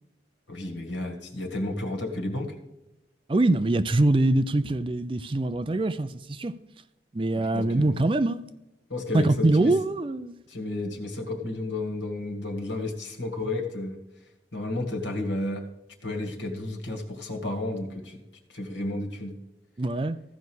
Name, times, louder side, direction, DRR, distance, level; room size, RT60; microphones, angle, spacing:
voice 1, 0.5-2.6 7.3-8.1 8.9-9.7 10.5-14.0 14.5-15.6 16.0-18.2 18.5-19.4, left 2 dB, 80° left, 2.0 m, -32 dB
voice 2, 3.3-6.6 7.1-8.4 9.1-10.4 19.8-20.2, right 2 dB, 30° right, 0.4 m, -23 dB
15.0 x 5.4 x 6.3 m
head